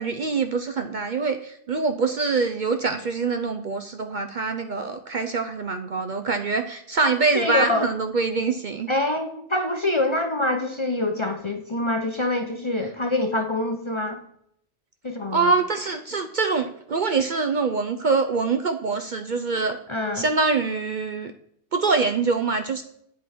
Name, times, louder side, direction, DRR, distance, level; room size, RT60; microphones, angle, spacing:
voice 1, 0.0-8.9 15.3-19.8 20.1-21.3 21.7-22.8, right 4 dB, 50° right, 7 dB, 0.6 m, -24 dB
voice 2, 7.3-7.9 8.9-14.2 15.0-15.5 19.9-20.3, left 2 dB, 30° left, 5 dB, 0.6 m, -25 dB
8.5 x 8.1 x 4.3 m, 0.70 s
omnidirectional pair, 1.2 m